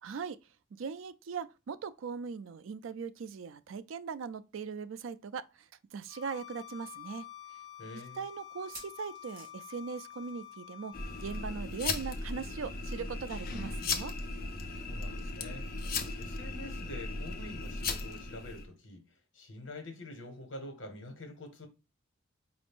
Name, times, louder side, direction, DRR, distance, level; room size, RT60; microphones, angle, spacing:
voice 1, 0.0-0.4 0.8-5.4 5.9-7.2 8.2-10.9 11.2-14.1, right 5 dB, 80° right, 0.4 m, -40 dB
sound 1, 5.8-5.9 6.2-6.3 6.9-7.0 8.5-10.6 10.9-11.1 11.4-11.5 12.9-13.0, right 2 dB, 45° right, 1.9 m, -52 dB
Bowed string instrument, 6.1-11.5, left 11 dB, 15° right, 1.2 m, -49 dB
voice 2, 7.8-8.2 14.8-15.7 16.2-19.1 19.3-21.7, left 1 dB, 70° left, 1.2 m, -46 dB
sound 2, 10.9-18.7, left 3 dB, 50° left, 0.6 m, -37 dB
4.8 x 2.5 x 3.5 m
head